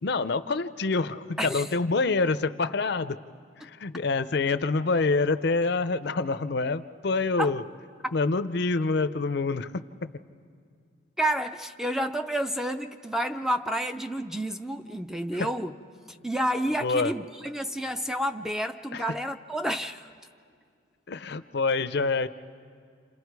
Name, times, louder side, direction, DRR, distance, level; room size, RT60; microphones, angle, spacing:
voice 1, 0.0-3.2 3.6-7.6 8.1-9.8 15.3-15.5 16.8-17.1 18.9-19.0 21.1-22.3, left 3 dB, 55° left, 0.5 m, -26 dB
voice 2, 1.4-1.7 7.4-7.6 8.0-8.1 11.2-15.7 16.1-20.1, right 1 dB, ahead, 0.5 m, -30 dB
29.0 x 27.0 x 4.7 m
head